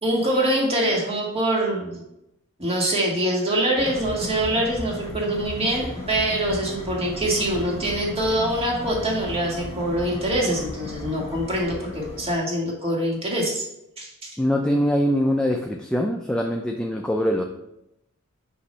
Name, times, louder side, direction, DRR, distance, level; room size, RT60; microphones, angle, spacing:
voice 1, 0.0-2.0 2.6-13.6 14.0-14.4, right 1 dB, 25° right, -2 dB, 1.8 m, -24 dB
sound 1, 3.8-12.4, left 1 dB, 35° left, 2.6 m, -35 dB
voice 2, 14.4-17.4, equal, 5° left, 2 dB, 0.4 m, -23 dB
8.3 x 3.0 x 5.4 m, 0.86 s
head